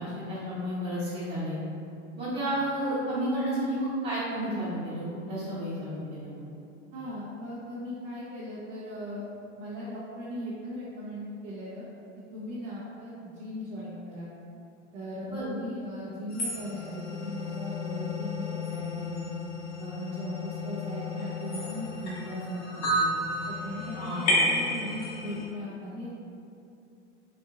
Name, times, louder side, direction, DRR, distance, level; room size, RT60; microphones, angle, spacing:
voice 1, 0.0-1.6 2.2-6.4 15.3-15.5 23.9-24.3, right 1 dB, 30° right, -13 dB, 1.1 m, -31 dB
voice 2, 6.9-9.2 9.6-11.9 12.3-14.3 14.9-19.3 19.8-23.1 23.5-24.1 24.4-26.1, equal, 65° right, -9 dB, 1.1 m, -38 dB
sound 1, 16.3-25.4, left 1 dB, 50° left, 1.2 m, -32 dB
4.4 x 2.7 x 2.5 m, 2.6 s
hypercardioid pair, 100°, 36 cm